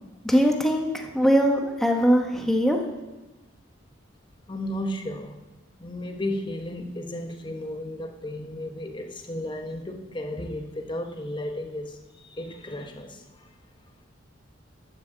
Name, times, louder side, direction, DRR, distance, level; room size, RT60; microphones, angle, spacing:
voice 1, 0.2-2.8, equal, ahead, 2 dB, 1.1 m, -21 dB
voice 2, 4.5-5.4 5.8-13.5, left 1 dB, 25° left, 5 dB, 1.0 m, -34 dB
12.0 x 6.4 x 7.5 m, 1.1 s
head